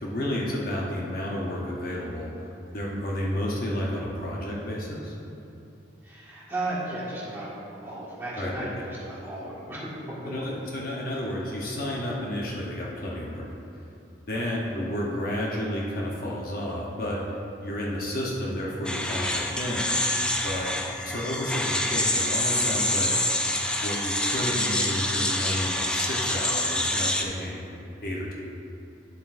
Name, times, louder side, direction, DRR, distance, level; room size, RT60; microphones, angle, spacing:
voice 1, 0.0-5.1 8.4-8.7 10.2-13.4 14.3-20.2 20.4-20.7 21.0-23.1 23.8-27.6 28.0-28.3, left 1 dB, 50° left, -3 dB, 0.9 m, -31 dB
voice 2, 6.0-7.5 7.8-10.5 14.3-14.5, right 1 dB, 10° right, -9 dB, 1.7 m, -35 dB
sound 1, 18.8-27.2, left 1 dB, 5° left, 0.3 m, -26 dB
10.5 x 7.5 x 2.6 m, 2.7 s
head